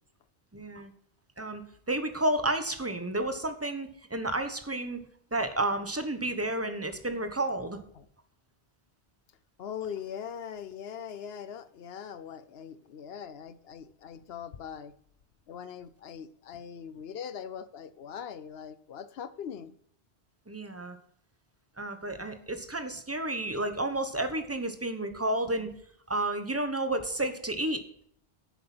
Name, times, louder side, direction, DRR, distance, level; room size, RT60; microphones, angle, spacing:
voice 1, 0.5-0.9 1.4-1.6 1.9-5.0 5.3-7.8 20.5-21.0 21.8-25.7 26.1-27.8, right 1 dB, 15° right, 8 dB, 1.1 m, -31 dB
voice 2, 9.6-14.9 15.5-19.7, left 8 dB, 75° left, 15 dB, 1.0 m, -41 dB
10.5 x 7.7 x 6.0 m, 0.67 s
omnidirectional pair, 1.0 m